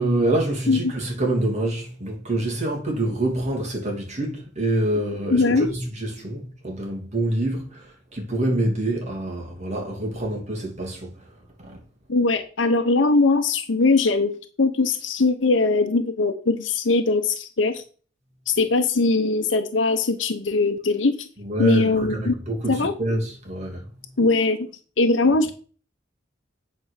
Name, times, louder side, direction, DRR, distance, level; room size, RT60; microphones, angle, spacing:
voice 1, 0.0-7.9 8.1-11.1 11.6-11.8 21.4-23.8, right 1 dB, 40° right, 2.8 m, -26 dB
voice 2, 5.3-5.7 12.1-14.3 14.6-17.8 18.5-21.3 21.6-22.3 22.7-22.9 24.2-24.7 25.0-25.5, left 3 dB, 85° left, 0.8 m, -20 dB
8.7 x 4.5 x 6.6 m
head